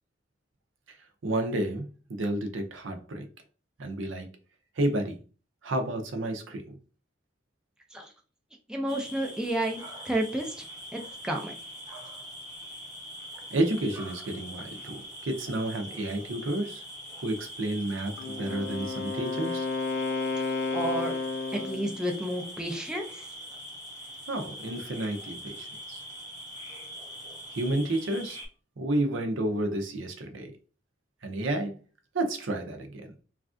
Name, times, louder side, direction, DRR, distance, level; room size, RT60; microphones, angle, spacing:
voice 1, 1.2-3.3 3.8-4.3 4.8-5.2 5.6-6.8 13.5-16.8 17.2-19.7 24.3-26.0 27.5-28.4 28.8-30.5 31.2-31.8 32.1-33.1, right 1 dB, 80° right, 0.6 m, -31 dB
voice 2, 8.7-10.6 10.9-11.5 20.7-21.1 21.5-23.1, right 1 dB, 5° right, 0.4 m, -31 dB
sound 1, 8.9-28.5, equal, 20° right, 0.8 m, -43 dB
Wind instrument woodwind instrument, 18.2-22.0, left 3 dB, 65° left, 0.6 m, -32 dB
3.2 x 2.4 x 2.4 m
head